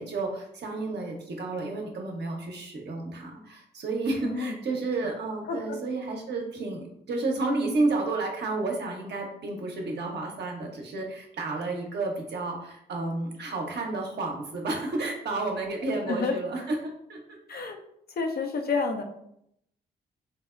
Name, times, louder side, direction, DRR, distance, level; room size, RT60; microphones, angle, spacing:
voice 1, 0.0-17.4, right 3 dB, 55° right, 1 dB, 0.8 m, -31 dB
voice 2, 4.2-4.6 5.5-5.8 16.1-16.3 17.5-17.8 18.2-19.0, left 4 dB, 50° left, 4 dB, 0.6 m, -29 dB
4.2 x 2.0 x 2.4 m, 0.75 s
hypercardioid pair, 40°, 21 cm